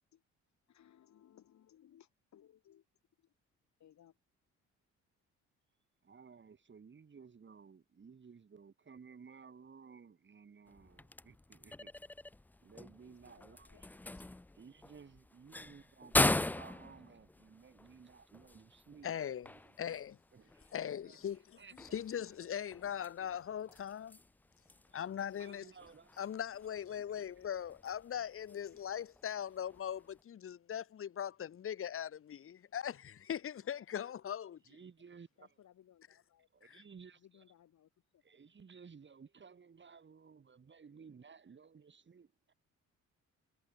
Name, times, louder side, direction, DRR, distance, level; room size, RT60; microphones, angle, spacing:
voice 1, 0.7-2.8 3.2-3.3 3.8-4.1 13.1-14.3 23.1-23.3 33.3-34.1 35.4-36.8 37.1-38.4, left 10 dB, 65° left, 5.7 m, -64 dB
voice 2, 6.0-11.9 12.6-13.9 14.2-19.1 19.5-19.8 20.3-20.7 21.0-21.2 21.6-22.0 22.6-22.7 24.9-25.0 25.4-26.1 26.9-27.2 34.7-35.5 36.5-37.4 38.2-42.5, right 6 dB, 40° right, 3.8 m, -57 dB
sound 1, 10.7-30.2, left 2 dB, 5° left, 0.3 m, -41 dB
voice 3, 19.0-19.5 19.8-20.2 20.7-24.2 24.9-25.7 26.2-34.6 36.6-36.8, left 9 dB, 45° left, 0.9 m, -40 dB
cardioid pair, 90°, 30 cm